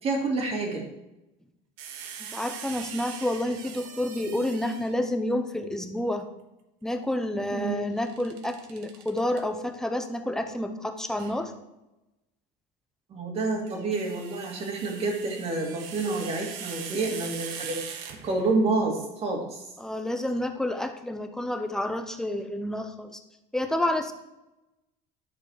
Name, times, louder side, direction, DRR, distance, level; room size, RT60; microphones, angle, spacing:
voice 1, 0.0-0.9 7.5-7.8 13.1-17.8 18.2-19.6, right 3 dB, 30° right, 1 dB, 2.2 m, -28 dB
sound 1, 1.8-5.1 8.0-9.4 11.2-11.4 13.5-18.6, right 7 dB, 85° right, 1.3 m, -41 dB
voice 2, 2.3-6.3 6.8-11.5 19.8-23.2 23.5-24.1, left 1 dB, 5° left, 6 dB, 0.7 m, -29 dB
11.5 x 6.6 x 4.7 m, 0.97 s
cardioid pair, 170°, 19 cm